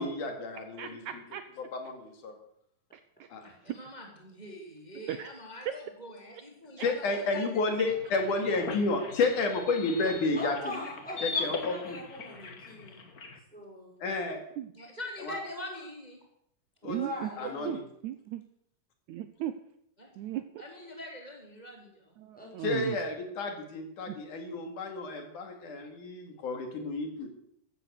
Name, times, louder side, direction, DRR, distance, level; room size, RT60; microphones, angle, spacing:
voice 1, 0.0-1.2 1.6-2.3 3.3-3.5 6.8-10.8 11.2-12.0 14.0-14.4 15.2-15.4 16.8-17.0 17.4-17.8 22.6-27.3, left 3 dB, 70° left, 4 dB, 3.7 m, -31 dB
voice 2, 0.8-1.4 2.9-3.3 3.7-3.8 5.1-5.3 14.6-14.7 16.9-17.3 17.7-17.8 18.0-18.4 19.1-19.5 20.2-20.4 22.2-23.0 24.1-24.2, right 12 dB, 75° right, 10 dB, 1.9 m, -36 dB
voice 3, 3.4-7.7 8.3-8.8 14.7-16.2 20.0-20.1 20.6-22.1, left 1 dB, 15° right, 1 dB, 2.5 m, -44 dB
sound 1, 7.9-13.4, left 4 dB, 40° left, 1.3 m, -39 dB
voice 4, 10.3-13.0 13.5-14.0 16.9-17.8 22.3-22.7, left 1 dB, ahead, -1 dB, 5.6 m, -41 dB
15.0 x 13.5 x 6.7 m, 0.72 s
omnidirectional pair, 3.8 m